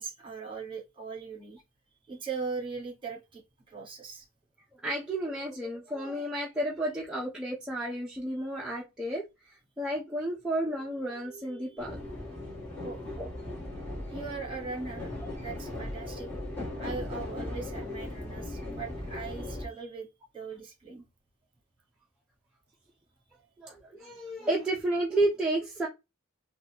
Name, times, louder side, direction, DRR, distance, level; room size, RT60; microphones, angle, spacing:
voice 1, 0.0-1.6 2.0-4.2 12.8-13.0 14.1-16.3 16.8-20.1 20.3-21.0, right 5 dB, 25° right, 1.5 m, -39 dB
voice 2, 4.8-9.3 9.8-12.5 13.2-13.3 23.6-25.9, right 1 dB, 5° right, 0.7 m, -32 dB
sound 1, 11.8-19.7, left 1 dB, 10° left, 1.8 m, -38 dB
4.0 x 2.4 x 2.9 m
head